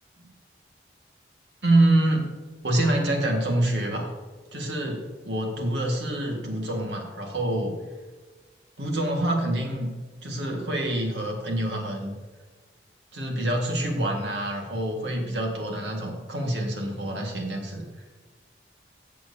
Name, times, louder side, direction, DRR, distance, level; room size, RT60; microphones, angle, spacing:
voice 1, 1.6-2.3 2.6-4.1 4.5-7.8 8.8-9.9 10.2-12.1 13.1-18.1, right 1 dB, 80° right, 1 dB, 1.8 m, -26 dB
15.0 x 7.6 x 2.8 m, 1.3 s
head